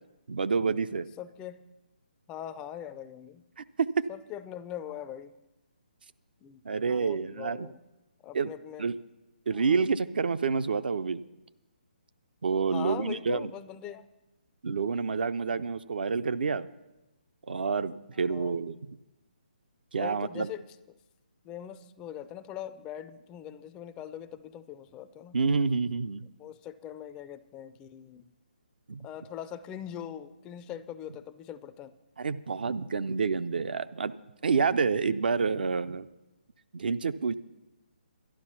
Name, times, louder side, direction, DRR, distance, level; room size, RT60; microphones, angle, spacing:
voice 1, 0.3-1.1 3.8-3.9 6.6-7.7 8.3-8.5 8.8-9.0 9.5-11.2 12.4-13.5 14.6-16.7 17.5-18.8 19.9-20.5 25.3-26.3 28.9-29.0 32.2-34.1 34.4-36.1 36.7-37.3, right 5 dB, 65° right, 13 dB, 0.5 m, -28 dB
voice 2, 1.2-1.7 2.3-3.4 4.1-5.3 6.4-6.6 6.9-7.8 8.2-8.8 9.5-9.8 12.6-14.1 18.1-18.6 19.9-20.6 21.4-25.4 26.2-28.3 29.0-31.9, left 10 dB, 15° left, 13 dB, 0.3 m, -42 dB
11.5 x 11.0 x 5.8 m, 0.98 s
figure-of-eight pair, 150°, 5 cm